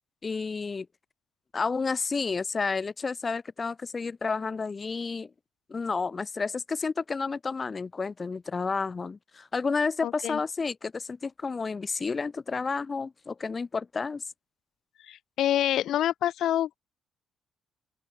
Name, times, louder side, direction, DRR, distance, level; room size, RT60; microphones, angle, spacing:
voice 1, 0.2-0.9 1.5-5.3 5.7-14.2, left 4 dB, 35° left, 1.1 m, -31 dB
voice 2, 10.0-10.4 15.0-16.8, left 12 dB, 75° left, 0.8 m, -27 dB
open air
cardioid pair, 90°, 0 cm